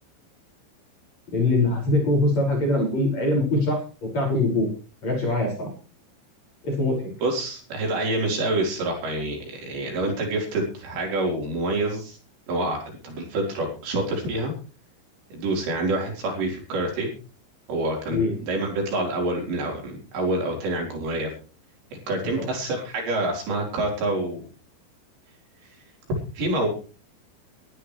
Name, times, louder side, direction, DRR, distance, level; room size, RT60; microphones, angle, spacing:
voice 1, 1.3-3.8 4.1-4.7 5.0-5.7 6.6-7.1 18.1-18.3 22.3-22.5, left 2 dB, 35° left, 0 dB, 6.9 m, -22 dB
voice 2, 7.2-12.2 12.5-14.5 15.3-17.1 17.7-21.3 22.1-24.5 26.4-26.7, right 2 dB, 65° right, 0 dB, 6.4 m, -27 dB
22.5 x 12.5 x 3.3 m, 0.36 s
omnidirectional pair, 5.5 m